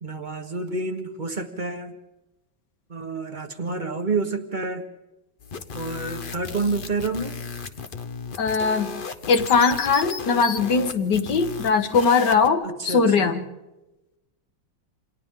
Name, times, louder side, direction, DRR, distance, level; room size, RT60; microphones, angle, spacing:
voice 1, 0.0-1.9 2.9-4.9 5.7-7.4 12.6-13.4, right 3 dB, 30° right, 7 dB, 1.1 m, -29 dB
sound 1, 5.4-12.5, left 5 dB, 45° left, 0.7 m, -35 dB
voice 2, 8.4-8.9 9.3-13.5, left 5 dB, 65° left, 7 dB, 1.8 m, -20 dB
28.5 x 27.0 x 3.7 m, 1.0 s
omnidirectional pair, 2.1 m